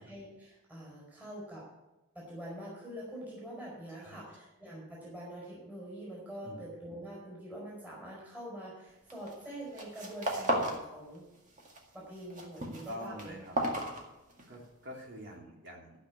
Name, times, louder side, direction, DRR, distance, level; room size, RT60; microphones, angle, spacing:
voice 1, 0.0-1.6 2.1-11.2 11.9-13.3, right 1 dB, 10° right, -5 dB, 4.6 m, -45 dB
voice 2, 3.9-4.2 6.4-6.6 12.6-13.5 14.5-15.9, equal, 55° right, -2 dB, 3.3 m, -46 dB
sound 1, 9.1-9.4 9.7-10.8 11.1-11.8 12.1-14.6, right 1 dB, 35° right, 2.0 m, -34 dB
13.0 x 6.2 x 8.2 m, 0.98 s
head